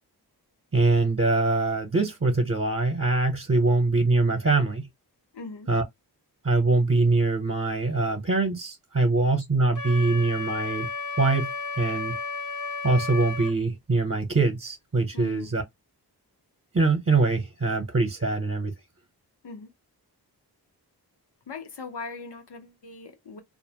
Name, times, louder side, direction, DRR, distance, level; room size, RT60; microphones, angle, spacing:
voice 1, 0.7-4.8 5.7-5.8 6.4-10.9 11.2-11.5 11.8-12.1 12.8-15.6 16.7-18.7, right 3 dB, 35° right, 0.8 m, -23 dB
voice 2, 5.3-5.7 15.1-15.5 19.4-19.7 21.5-23.4, left 4 dB, 85° left, 0.9 m, -40 dB
Wind instrument woodwind instrument, 9.8-13.6, left 4 dB, 50° left, 0.6 m, -33 dB
2.5 x 2.0 x 2.8 m
wide cardioid pair, 75°, 40 cm